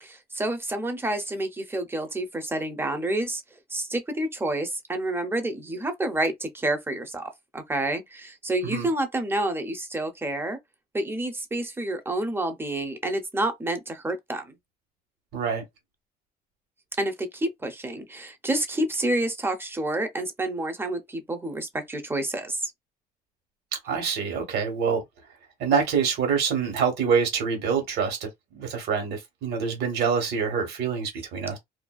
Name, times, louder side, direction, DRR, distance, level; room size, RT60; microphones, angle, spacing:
voice 1, 0.0-3.4 3.7-10.6 10.9-14.5 17.0-22.7, right 1 dB, 15° right, 0.6 m, -29 dB
voice 2, 15.3-15.6 23.8-25.0 25.6-28.3 28.5-31.6, right 6 dB, 75° right, 1.2 m, -26 dB
2.5 x 2.2 x 2.3 m
cardioid pair, 110°, 17 cm